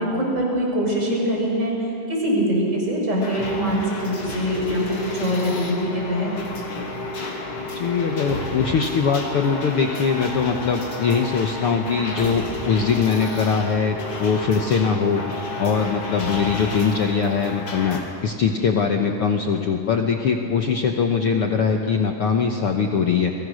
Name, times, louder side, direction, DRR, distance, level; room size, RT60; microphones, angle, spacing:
voice 1, 0.0-1.7 2.1-6.3, equal, 20° right, -1 dB, 5.9 m, -23 dB
sound 1, 3.2-18.0, left 2 dB, 40° left, 3.5 m, -31 dB
voice 2, 7.7-15.2 15.6-23.3, left 6 dB, 70° left, 3 dB, 1.3 m, -22 dB
30.0 x 22.0 x 6.4 m, 3.0 s
omnidirectional pair, 4.0 m